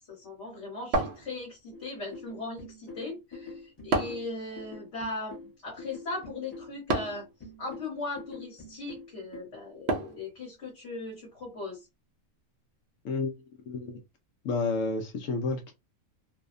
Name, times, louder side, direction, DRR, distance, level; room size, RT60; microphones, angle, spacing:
voice 1, 0.1-5.4 5.6-7.2 7.6-11.8, left 2 dB, 55° left, 1.2 m, -38 dB
sound 1, 0.9-1.8 3.9-4.4 6.9-7.3 9.9-10.3, right 3 dB, 65° right, 0.7 m, -30 dB
sound 2, 1.7-9.4, left 3 dB, 25° left, 0.8 m, -46 dB
voice 2, 13.7-14.0 14.4-15.7, left 3 dB, 75° left, 0.9 m, -30 dB
2.7 x 2.0 x 2.4 m
omnidirectional pair, 1.4 m